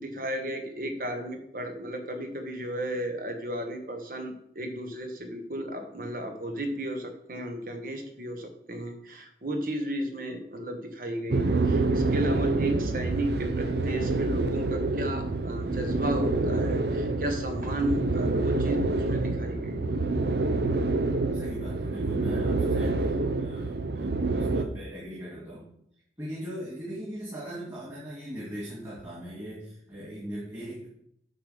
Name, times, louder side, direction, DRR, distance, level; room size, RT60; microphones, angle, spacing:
voice 1, 0.0-19.8, right 1 dB, 50° right, 5 dB, 1.3 m, -34 dB
sound 1, 11.3-24.6, right 3 dB, 70° right, 0.7 m, -27 dB
voice 2, 21.3-25.7 26.2-30.9, equal, 20° right, -6 dB, 2.4 m, -40 dB
8.0 x 5.0 x 6.6 m, 0.73 s
head